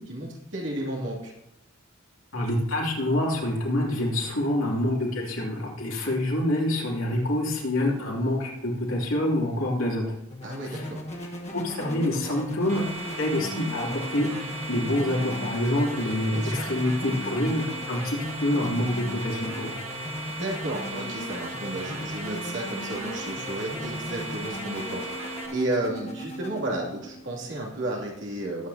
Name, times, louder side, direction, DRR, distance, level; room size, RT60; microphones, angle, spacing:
voice 1, 0.0-1.3 10.4-11.0 15.9-16.7 20.3-25.2 25.5-28.7, right 1 dB, 60° right, -2 dB, 2.7 m, -33 dB
voice 2, 2.3-10.0 10.7-10.9 11.5-12.8 13.2-14.3 14.7-19.7, left 1 dB, 70° left, -3 dB, 3.0 m, -26 dB
sound 1, 10.3-28.0, left 1 dB, 30° left, 1.3 m, -38 dB
sound 2, 12.7-25.5, right 2 dB, 30° right, 1.7 m, -37 dB
19.0 x 8.8 x 2.8 m, 0.87 s
head